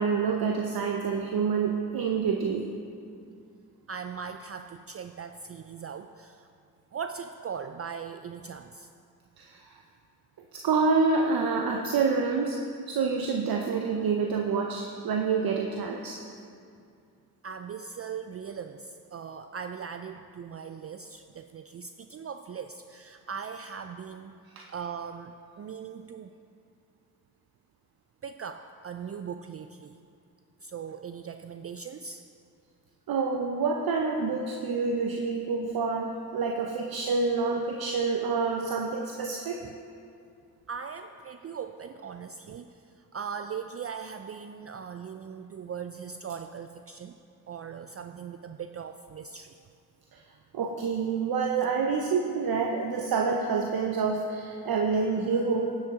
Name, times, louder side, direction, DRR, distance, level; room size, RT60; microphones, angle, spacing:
voice 1, 0.0-2.7 9.4-9.8 10.5-12.6 12.9-16.2 24.6-24.7 33.1-39.6 50.1-50.2 50.5-55.8, right 4 dB, 65° right, 2 dB, 0.7 m, -27 dB
voice 2, 3.9-6.5 6.9-8.9 17.4-24.4 24.7-26.3 28.2-30.0 30.6-32.2 39.6-39.7 40.7-47.2 47.5-49.6, right 6 dB, 40° right, 8 dB, 0.4 m, -39 dB
10.5 x 7.5 x 3.7 m, 2.4 s
supercardioid pair, 45°, 40 cm